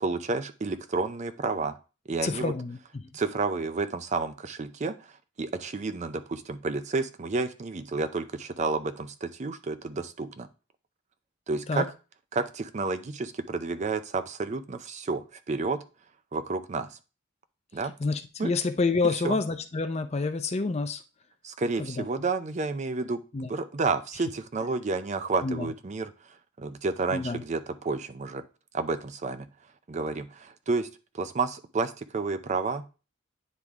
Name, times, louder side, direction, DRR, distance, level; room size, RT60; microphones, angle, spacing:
voice 1, 0.0-1.7 2.1-2.5 3.1-5.1 5.4-10.5 11.5-11.9 12.3-15.8 16.3-16.9 17.7-17.9 18.4-18.5 19.2-19.4 21.4-23.2 23.5-26.1 26.6-28.4 28.7-29.5 29.9-30.9 31.1-32.8, right 3 dB, 35° right, 10 dB, 0.5 m, -30 dB
voice 2, 2.2-3.0 11.7-11.8 18.0-21.0 21.8-22.1 23.3-23.5 25.4-25.7 27.1-27.4, left 3 dB, 35° left, 9 dB, 0.5 m, -28 dB
9.5 x 3.5 x 3.6 m, 0.33 s
head